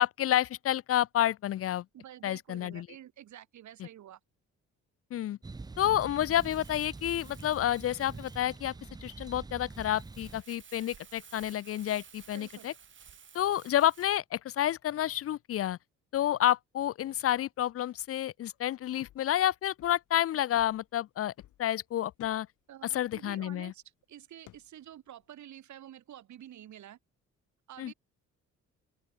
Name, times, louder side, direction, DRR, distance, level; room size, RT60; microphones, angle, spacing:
voice 1, 0.0-1.8 2.2-2.9 5.1-5.4 5.8-8.7 9.0-12.7 13.3-15.8 16.1-21.3 21.6-22.5 22.9-23.7 27.8-27.9, left 12 dB, 50° left, 0.4 m, -29 dB
voice 2, 1.9-4.2 12.3-12.7 22.7-23.8 24.1-27.0 27.7-27.9, right 11 dB, 70° right, 3.5 m, -49 dB
sound 1, 5.4-10.4, right 3 dB, 15° right, 0.6 m, -45 dB
Crumpling crinkling, 6.3-14.2, right 7 dB, 40° right, 1.5 m, -55 dB
sound 2, 19.0-19.4 19.8-20.1 20.6-21.7 22.2-22.5 22.9-23.6 24.5-24.9 25.2-25.3, left 14 dB, 80° left, 2.9 m, -56 dB
open air
cardioid pair, 90°, 30 cm